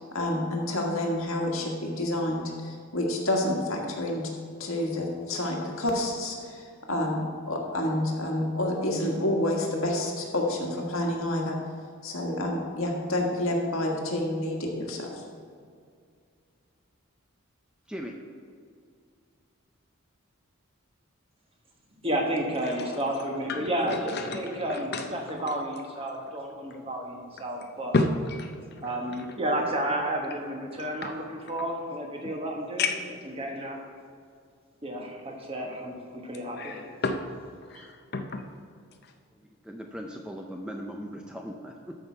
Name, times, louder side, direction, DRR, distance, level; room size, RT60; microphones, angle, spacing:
voice 1, 0.1-4.2 4.6-11.6 12.0-15.1, left 1 dB, 75° left, 0 dB, 1.6 m, -29 dB
voice 2, 22.0-28.0 28.8-33.8 34.8-36.8 37.7-37.8, right 1 dB, 25° right, 1 dB, 1.2 m, -31 dB
sound 1, 22.4-26.4 26.7-26.8 27.4-29.4 30.2-31.7 32.2-32.3 32.8-33.2 34.0-34.1 36.3-37.3 37.6-38.5 38.9-39.1, left 3 dB, 45° left, 0.6 m, -33 dB
voice 3, 39.4-42.0, equal, 5° right, 1 dB, 0.5 m, -39 dB
13.0 x 5.8 x 4.5 m, 2.2 s
head